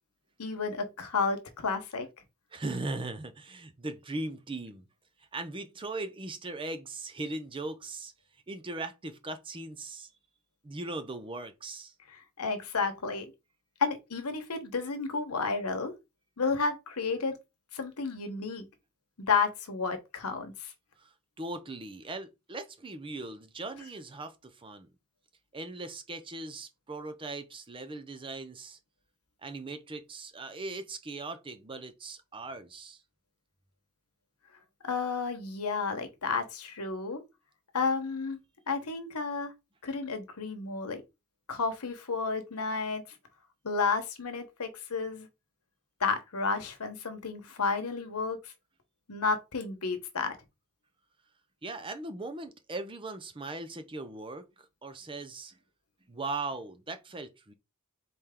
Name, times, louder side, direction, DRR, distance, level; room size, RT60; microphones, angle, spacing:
voice 1, 0.4-2.1 12.1-13.3 13.8-15.9 16.4-17.4 17.7-18.7 19.2-20.7 34.8-37.2 37.7-38.4 38.7-39.5 39.8-41.0 41.5-43.0 43.6-45.3 46.0-48.5 49.1-50.4, left 4 dB, 85° left, 1.0 m, -31 dB
voice 2, 2.5-4.8 5.3-8.1 8.5-10.1 10.6-11.9 21.0-21.1 21.4-24.9 25.5-28.8 29.4-33.0 51.6-55.5 56.1-57.5, right 2 dB, 25° right, 0.6 m, -39 dB
4.3 x 3.3 x 3.7 m
head